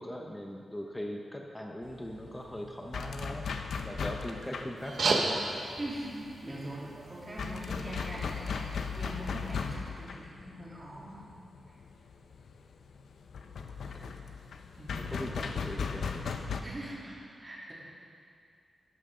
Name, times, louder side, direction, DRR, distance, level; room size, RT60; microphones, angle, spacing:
voice 1, 0.0-3.4 3.8-5.4 13.8-14.1 14.9-16.2, equal, 10° left, 1 dB, 0.9 m, -40 dB
sound 1, 1.8-16.6, left 5 dB, 80° left, 0.7 m, -38 dB
sound 2, 4.8-9.8, right 3 dB, 60° right, 1.1 m, -35 dB
voice 2, 5.8-11.2 14.8-14.9 16.6-17.7, right 1 dB, 25° right, -7 dB, 3.2 m, -42 dB
12.5 x 11.5 x 3.8 m, 2.3 s
wide cardioid pair, 120°, 0 cm